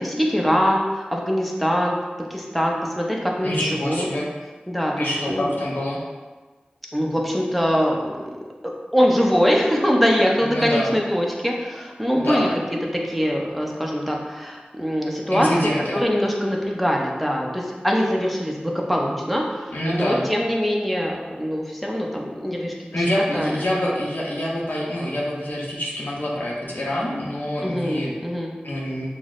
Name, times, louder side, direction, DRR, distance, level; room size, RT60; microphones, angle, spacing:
voice 1, 0.0-1.9 2.3-4.1 4.7-5.5 6.9-8.3 8.9-12.5 13.0-15.5 15.9-23.1 23.3-23.6 27.6-28.5, equal, ahead, -1 dB, 0.6 m, -23 dB
voice 2, 3.4-4.3 5.0-6.0 10.4-10.9 12.1-12.5 15.3-16.0 19.0-19.2 19.7-20.3 22.9-28.1 28.6-29.1, equal, 70° left, -4 dB, 0.6 m, -26 dB
5.9 x 2.0 x 2.4 m, 1.3 s
wide cardioid pair, 55°, 3 cm